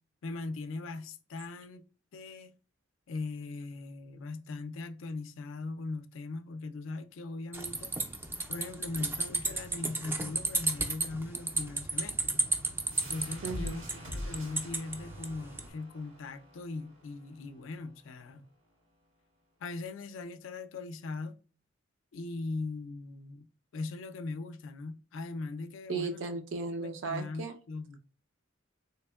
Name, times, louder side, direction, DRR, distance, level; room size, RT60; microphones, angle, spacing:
voice 1, 0.2-1.8 2.1-2.5 3.1-7.9 8.5-12.4 13.1-18.5 19.6-21.4 22.1-23.5 23.7-26.3 26.8-28.0, left 3 dB, 75° left, 0.4 m, -40 dB
sound 1, 7.5-15.7, right 2 dB, 10° right, 0.3 m, -34 dB
sound 2, 12.9-18.3, equal, 90° right, 1.6 m, -45 dB
voice 2, 13.4-13.8 25.9-27.5, right 4 dB, 70° right, 0.5 m, -35 dB
3.5 x 2.9 x 2.2 m
head